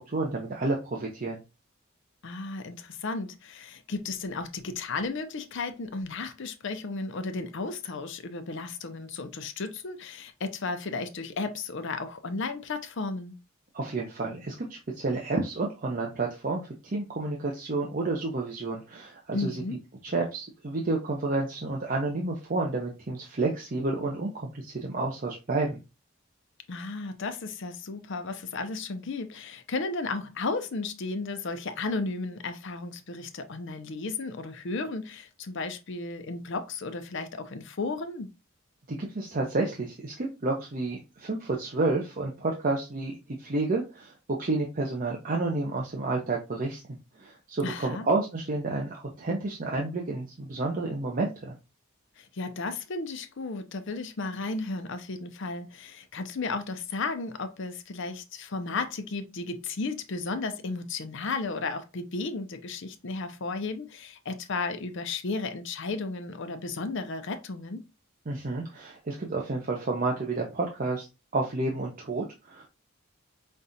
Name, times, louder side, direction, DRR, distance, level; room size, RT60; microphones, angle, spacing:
voice 1, 0.0-1.4 13.7-19.6 20.1-25.8 38.9-46.8 47.2-51.6 68.3-71.1 71.3-72.7, right 2 dB, 40° right, 0.7 m, -30 dB
voice 2, 2.2-13.4 19.3-19.8 26.7-38.3 47.6-48.1 52.2-67.8, left 3 dB, 60° left, 0.6 m, -34 dB
5.3 x 2.5 x 2.7 m
head